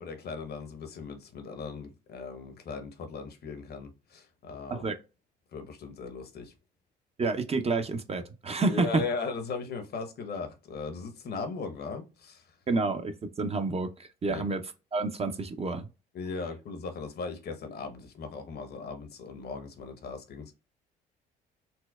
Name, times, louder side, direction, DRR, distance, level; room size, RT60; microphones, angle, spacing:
voice 1, 0.0-4.9 5.5-6.5 8.6-12.4 14.3-14.5 16.1-20.6, left 4 dB, 50° left, 0.9 m, -38 dB
voice 2, 7.2-9.0 12.7-14.6 14.9-15.9, right 3 dB, 30° right, 0.6 m, -29 dB
4.2 x 2.0 x 2.3 m
hypercardioid pair, 55°, 21 cm